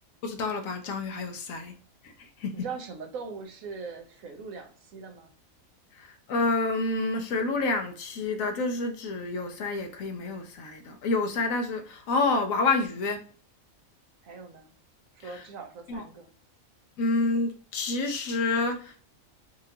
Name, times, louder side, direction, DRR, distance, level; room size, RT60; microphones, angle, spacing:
voice 1, 0.2-1.7 2.0-2.5 6.0-13.2 15.9-16.0 17.0-19.0, left 3 dB, 75° left, 1.1 m, -28 dB
voice 2, 2.5-5.3 14.2-14.7 15.1-16.3, right 5 dB, 75° right, 1.2 m, -41 dB
4.4 x 2.6 x 2.7 m
omnidirectional pair, 1.5 m